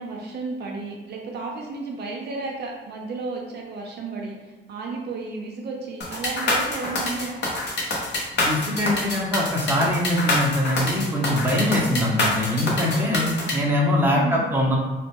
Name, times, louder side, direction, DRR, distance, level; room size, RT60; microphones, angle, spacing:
voice 1, 0.0-7.4 14.1-14.6, right 3 dB, 55° right, -1 dB, 0.4 m, -33 dB
sound 1, 6.0-13.5, left 2 dB, 60° left, 0.7 m, -25 dB
voice 2, 8.4-14.8, left 1 dB, 10° right, -3 dB, 0.6 m, -23 dB
2.1 x 2.1 x 2.8 m, 1.3 s
cardioid pair, 90°, 20 cm